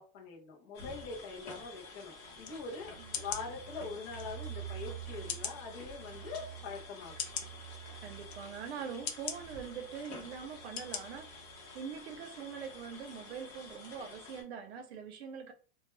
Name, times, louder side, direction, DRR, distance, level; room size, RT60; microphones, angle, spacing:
voice 1, 0.0-7.2, left 4 dB, 25° left, 0.4 m, -43 dB
sound 1, 0.7-14.4, left 3 dB, 45° left, 0.8 m, -50 dB
sound 2, 2.2-11.8 12.1-12.2 12.4-12.9, right 12 dB, 35° right, 0.4 m, -49 dB
sound 3, 2.4-2.6 3.1-3.4 4.2-4.3 5.3-5.6 6.3-6.4 7.2-7.5 8.3-8.4 9.1-9.4 10.1-10.2 10.8-11.0 11.4-11.5, left 8 dB, 80° left, 0.7 m, -38 dB
voice 2, 8.0-11.3 11.7-15.5, right 7 dB, 85° right, 0.6 m, -43 dB
2.1 x 2.1 x 3.0 m
supercardioid pair, 175°, 31 cm